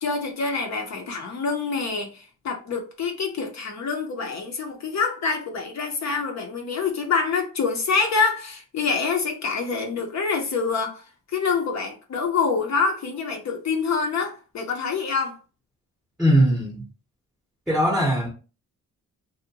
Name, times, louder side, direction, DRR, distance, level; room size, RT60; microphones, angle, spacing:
voice 1, 0.0-11.0 11.3-15.4, left 5 dB, 60° left, 0.6 m, -26 dB
voice 2, 16.2-16.8 17.7-18.3, right 1 dB, ahead, 0.6 m, -20 dB
2.7 x 2.1 x 2.7 m
wide cardioid pair, 130°, 32 cm